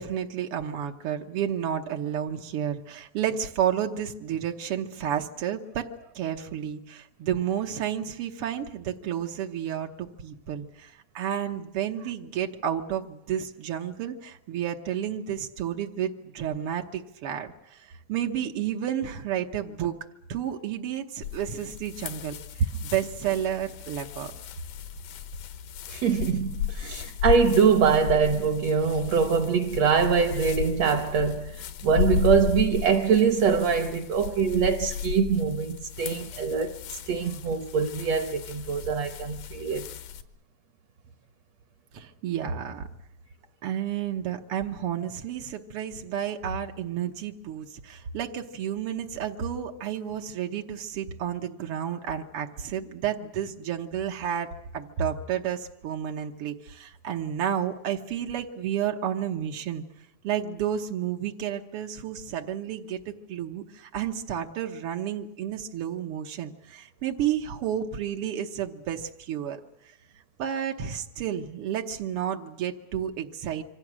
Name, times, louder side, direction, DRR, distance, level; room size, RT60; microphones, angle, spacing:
voice 1, 0.0-5.9 6.1-20.0 20.3-22.3 22.9-24.3 41.9-42.9 43.6-59.8 60.2-69.6 70.4-73.6, right 9 dB, 85° right, 1.2 m, -31 dB
sound 1, 21.2-40.2, left 9 dB, 85° left, 3.0 m, -34 dB
voice 2, 25.9-36.8 37.1-39.9, right 6 dB, 65° right, 1.7 m, -23 dB
26.5 x 25.0 x 6.2 m
omnidirectional pair, 4.1 m